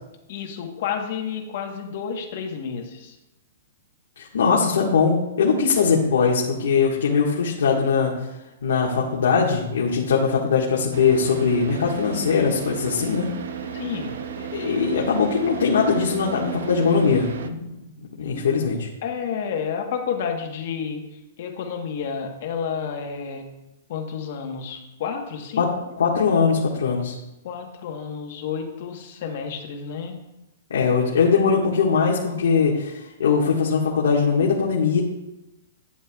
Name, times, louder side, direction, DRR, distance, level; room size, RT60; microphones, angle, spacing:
voice 1, 0.3-3.2 13.7-14.2 18.2-18.5 19.0-23.5 23.9-25.7 27.4-30.2, left 6 dB, 40° left, 4 dB, 1.2 m, -30 dB
voice 2, 4.2-8.3 8.6-13.3 14.5-17.7 18.2-18.9 25.6-25.7 26.0-27.1 30.7-35.0, left 5 dB, 80° left, -4 dB, 1.6 m, -21 dB
Car / Idling, 10.9-17.5, right 7 dB, 55° right, 0.6 m, -34 dB
11.5 x 9.3 x 2.3 m, 0.95 s
hypercardioid pair, 180°, 0 cm